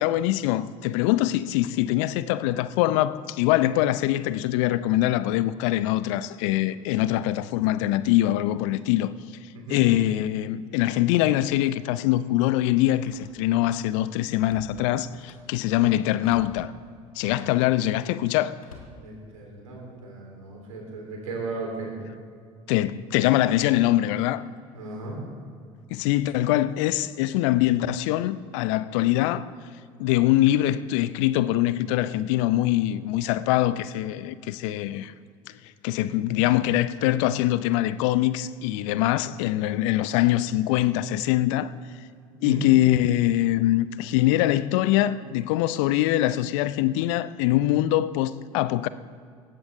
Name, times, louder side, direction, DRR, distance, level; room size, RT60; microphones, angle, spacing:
voice 1, 0.0-9.1 9.7-16.7 17.2-18.5 22.7-24.4 25.9-29.5 30.0-35.1 35.8-41.7 42.4-48.9, left 14 dB, 65° left, 0.6 m, -23 dB
Slam, 11.4-11.5 12.9-13.7 14.0-15.6 16.2-16.7 17.4-17.9 18.6-19.7 20.2-20.6, left 3 dB, 85° left, 1.8 m, -49 dB
voice 2, 18.9-22.0 24.7-25.2 36.3-36.4 42.4-42.6, right 4 dB, 80° right, 3.8 m, -36 dB
18.5 x 15.0 x 3.7 m
figure-of-eight pair, 65°, 17 cm